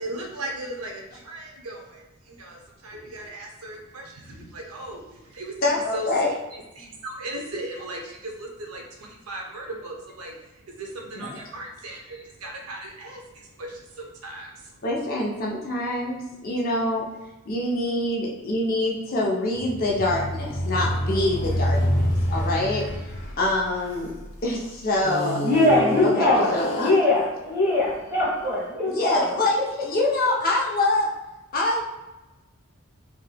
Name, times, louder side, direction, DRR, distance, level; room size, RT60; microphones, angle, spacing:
voice 1, 0.0-5.5 5.9-6.1 6.5-14.8, right 1 dB, 90° right, 1 dB, 0.6 m, -37 dB
voice 2, 5.6-6.3 14.8-17.0 17.4-22.8 23.4-24.1 24.4-25.4 26.0-26.9 28.9-31.1 31.5-31.8, left 2 dB, 40° left, -2 dB, 0.6 m, -25 dB
sound 1, 19.5-24.4 25.0-27.2, equal, 65° left, 1.0 m, -27 dB
voice 3, 25.4-29.2 30.0-30.1, left 1 dB, 15° right, -7 dB, 1.3 m, -22 dB
3.8 x 2.6 x 2.2 m, 1.0 s
head